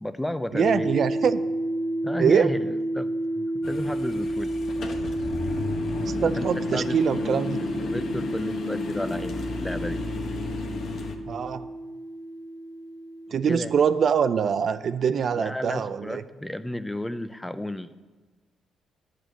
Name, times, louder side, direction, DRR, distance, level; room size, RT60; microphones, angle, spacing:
voice 1, 0.0-0.9 2.0-3.1 3.4-4.5 6.3-7.4 7.8-10.0 13.5-13.7 15.3-17.9, left 1 dB, 10° left, 12 dB, 0.5 m, -33 dB
sound 1, 0.5-14.5, right 1 dB, 75° left, 1.4 m, -31 dB
voice 2, 0.5-1.4 2.2-2.5 6.1-7.6 11.2-11.7 13.3-16.2, right 7 dB, 55° right, 12 dB, 0.4 m, -24 dB
sound 2, 3.6-11.2, left 4 dB, 60° left, 1.0 m, -33 dB
10.0 x 5.0 x 7.7 m, 1.3 s
cardioid pair, 90°, 0 cm